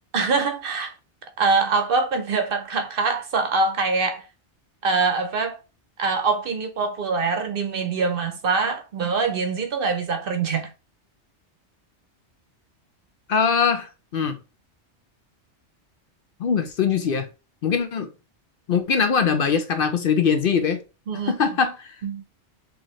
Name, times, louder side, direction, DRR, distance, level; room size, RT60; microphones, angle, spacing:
voice 1, 0.1-0.9 1.4-4.2 4.8-5.6 6.0-10.7 21.1-21.3 22.0-22.2, right 4 dB, 55° right, 0.8 m, -24 dB
voice 2, 13.3-14.4 16.4-17.3 17.6-18.1 18.7-20.8 21.3-22.0, left 6 dB, 60° left, 0.7 m, -22 dB
4.6 x 2.9 x 3.1 m
omnidirectional pair, 1.2 m